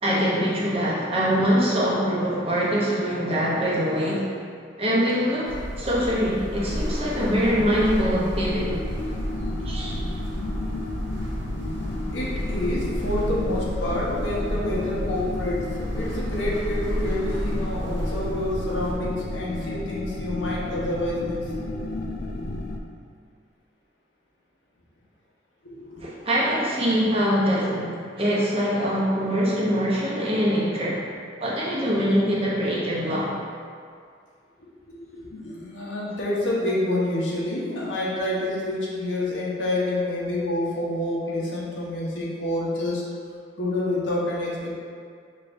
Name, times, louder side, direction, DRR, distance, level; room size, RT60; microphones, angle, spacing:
voice 1, 0.0-4.4 4.8-8.8 9.6-10.0 26.0-31.1 31.4-33.3, equal, 30° right, -6 dB, 0.9 m, -23 dB
sound 1, 5.4-19.0, equal, 80° right, 0.8 m, -32 dB
sound 2, 8.6-22.8, left 1 dB, 50° left, 0.4 m, -32 dB
voice 2, 12.1-21.4 25.6-26.1 34.9-43.0 43.6-44.7, left 1 dB, 85° left, -5 dB, 1.0 m, -28 dB
5.5 x 3.4 x 2.6 m, 2.1 s
head